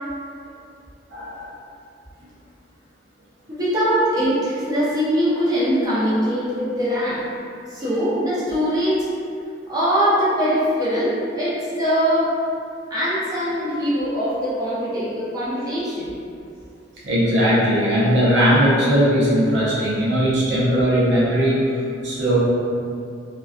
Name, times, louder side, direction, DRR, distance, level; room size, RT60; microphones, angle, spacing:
voice 1, 1.1-1.5 17.0-22.4, equal, 70° right, -7 dB, 0.6 m, -19 dB
voice 2, 3.5-7.2 7.7-9.0 9.7-12.3 12.9-16.1, equal, 20° right, -10 dB, 0.6 m, -22 dB
2.3 x 2.2 x 2.4 m, 2.5 s
head